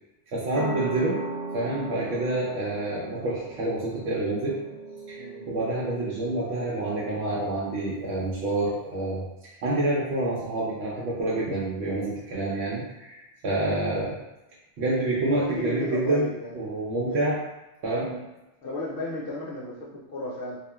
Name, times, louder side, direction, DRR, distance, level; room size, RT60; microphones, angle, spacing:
voice 1, 0.3-1.3 1.5-4.5 5.1-5.2 5.5-9.2 9.6-14.2 14.8-17.4 17.8-18.1, right 2 dB, 75° right, -6 dB, 0.9 m, -27 dB
sound 1, 0.5-7.7, right 2 dB, 25° right, 0.5 m, -38 dB
voice 2, 15.5-16.6 17.0-17.2 18.1-18.2 18.6-20.6, left 2 dB, 65° left, -5 dB, 0.7 m, -35 dB
2.8 x 2.3 x 2.2 m, 1.0 s
omnidirectional pair, 1.1 m